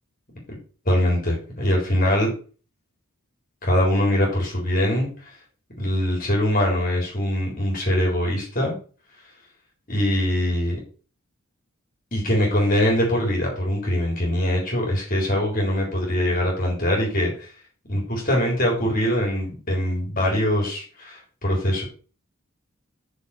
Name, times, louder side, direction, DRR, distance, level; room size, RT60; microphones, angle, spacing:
voice 1, 0.9-2.3 3.6-5.1 5.8-8.7 9.9-10.8 12.1-17.5 17.9-21.8, left 1 dB, 40° left, -2 dB, 3.8 m, -22 dB
6.8 x 6.7 x 6.5 m, 0.38 s
head